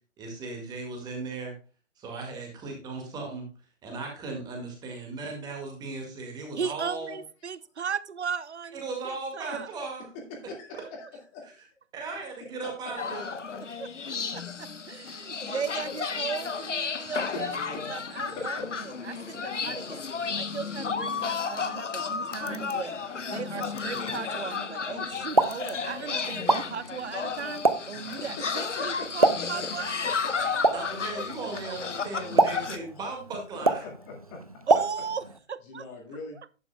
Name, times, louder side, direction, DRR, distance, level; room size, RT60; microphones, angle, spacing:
voice 1, 0.2-1.5 2.0-3.5 3.8-7.2 8.8-10.1 11.4-11.5 11.9-13.3 30.7-33.9, right 3 dB, 10° right, 2 dB, 1.9 m, -37 dB
voice 2, 6.5-9.7 10.7-11.1 14.3-17.6 17.9-18.6 19.0-20.0 20.3-22.9 23.3-27.6 27.9-29.9 30.8-30.9 31.6-31.8 34.7-35.8, right 6 dB, 60° right, 18 dB, 0.7 m, -36 dB
voice 3, 10.1-11.5 14.5-14.6 16.9-17.4 17.7-17.8 18.3-18.7 20.3-20.4 22.8-22.9 27.9-28.3 28.6-29.7 30.0-30.1 33.5-34.5 35.7-36.4, left 3 dB, 20° left, 0 dB, 2.0 m, -41 dB
sound 1, 13.0-32.8, left 5 dB, 70° left, 1.0 m, -33 dB
Explosion, 25.1-35.4, right 3 dB, 30° right, 0.4 m, -29 dB
11.0 x 8.9 x 2.2 m, 0.34 s
figure-of-eight pair, 135°, 38 cm